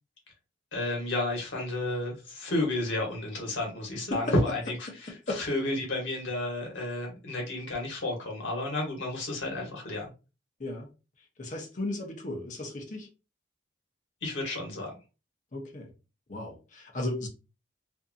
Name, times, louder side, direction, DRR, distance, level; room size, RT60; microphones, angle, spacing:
voice 1, 0.7-10.1 14.2-14.9, left 2 dB, 80° left, 1.0 m, -31 dB
voice 2, 5.1-5.4 10.6-10.9 11.4-13.1 15.5-15.9 16.3-17.3, left 2 dB, 40° left, 0.6 m, -35 dB
2.6 x 2.5 x 2.4 m
head